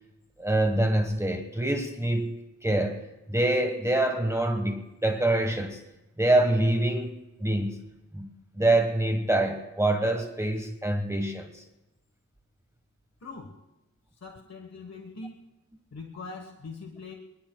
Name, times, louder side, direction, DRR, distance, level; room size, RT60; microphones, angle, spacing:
voice 1, 0.4-2.3 2.6-3.0 3.3-5.8 6.2-7.1 7.4-7.8 8.1-8.3 8.6-11.6, right 1 dB, 10° right, 4 dB, 1.4 m, -25 dB
voice 2, 13.2-13.6 14.2-15.5 15.9-17.1, left 3 dB, 60° left, 2 dB, 1.5 m, -42 dB
27.5 x 20.0 x 2.3 m, 0.97 s
wide cardioid pair, 100°, 30 cm